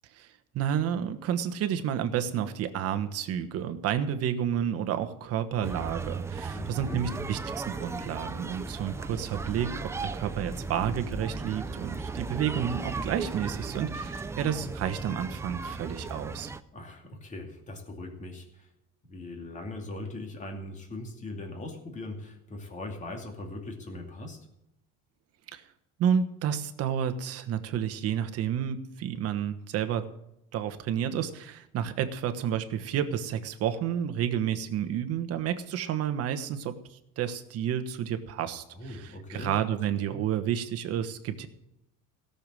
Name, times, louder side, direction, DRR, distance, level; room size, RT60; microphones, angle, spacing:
voice 1, 0.5-16.5 25.5-25.6 26.0-30.1 30.5-41.5, right 9 dB, 45° right, 9 dB, 1.3 m, -30 dB
sound 1, 5.6-16.6, right 4 dB, 10° right, 0.4 m, -36 dB
voice 2, 6.5-7.3 16.7-18.7 19.0-24.5 38.7-39.5 40.0-40.2, left 2 dB, 20° left, 2 dB, 2.5 m, -40 dB
17.0 x 6.9 x 7.6 m, 0.85 s
cardioid pair, 160°, 33 cm